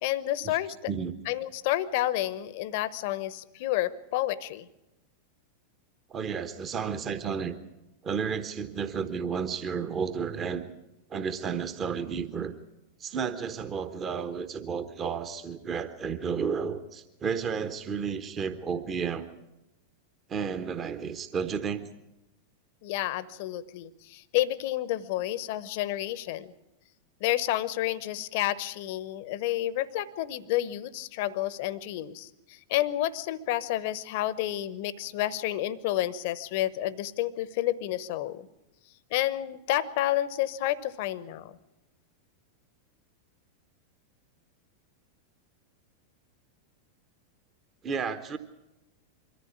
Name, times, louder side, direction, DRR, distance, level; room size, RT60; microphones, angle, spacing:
voice 1, 0.0-0.9 1.3-4.7 22.8-26.5 27.2-38.5 39.1-41.6, left 14 dB, 50° left, 18 dB, 0.9 m, -30 dB
voice 2, 6.1-7.6 8.0-10.6 11.1-12.5 13.0-19.3 20.3-21.8 47.8-48.4, right 6 dB, 25° right, 10 dB, 1.1 m, -32 dB
23.5 x 14.5 x 8.5 m, 0.96 s
figure-of-eight pair, 90°, 0 cm